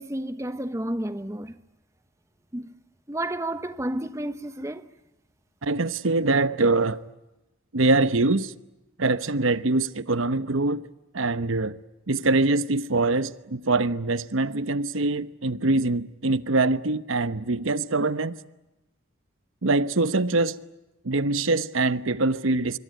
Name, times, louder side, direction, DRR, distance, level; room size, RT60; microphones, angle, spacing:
voice 1, 0.0-1.5 2.5-2.7 3.1-4.9, right 1 dB, 15° right, 0.9 m, -31 dB
voice 2, 5.6-7.0 7.7-8.5 9.0-10.9 11.1-11.8 12.1-18.4 19.6-20.6 21.0-22.8, right 2 dB, 75° right, 1.0 m, -23 dB
25.5 x 24.0 x 9.3 m
head